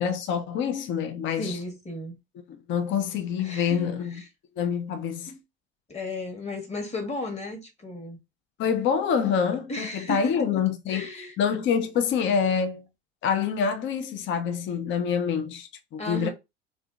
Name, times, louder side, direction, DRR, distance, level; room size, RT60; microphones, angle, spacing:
voice 1, 0.0-1.6 2.5-4.2 4.6-5.3 8.6-11.1 11.4-12.8 13.2-16.3, left 7 dB, 40° left, 0.5 m, -26 dB
voice 2, 1.4-2.2 3.4-4.2 5.3-5.4 5.9-8.2 9.7-10.6 10.9-11.3 16.0-16.3, left 2 dB, 20° left, 1.4 m, -34 dB
3.4 x 2.4 x 2.4 m
hypercardioid pair, 70°, 30 cm